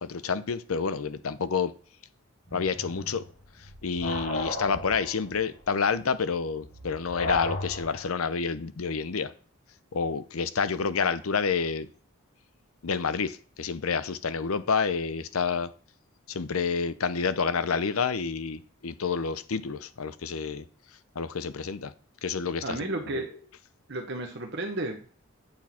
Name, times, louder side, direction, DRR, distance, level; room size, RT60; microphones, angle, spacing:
voice 1, 0.0-1.7 2.5-3.2 3.8-9.3 9.9-11.9 12.8-15.7 16.3-20.6 21.2-21.9 22.2-23.2, left 5 dB, 85° left, 0.7 m, -29 dB
sound 1, 2.5-8.2, left 1 dB, 70° left, 3.4 m, -36 dB
voice 2, 22.6-23.3 23.9-25.2, right 2 dB, 55° right, 1.1 m, -33 dB
8.7 x 6.3 x 4.3 m
head